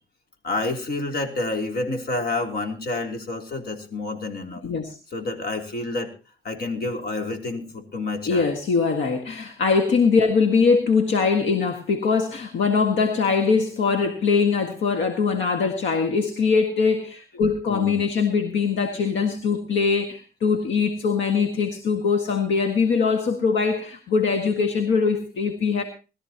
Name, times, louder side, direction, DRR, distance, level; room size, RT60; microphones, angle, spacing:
voice 1, 0.4-4.6 5.1-6.1 6.4-8.6 17.7-18.1 21.4-21.5 22.3-22.4, left 2 dB, 50° left, 3 dB, 3.3 m, -29 dB
voice 2, 4.6-5.0 8.3-25.8, left 5 dB, 70° left, 5 dB, 1.8 m, -22 dB
21.0 x 13.5 x 2.9 m, 0.32 s
cardioid pair, 90°, 20 cm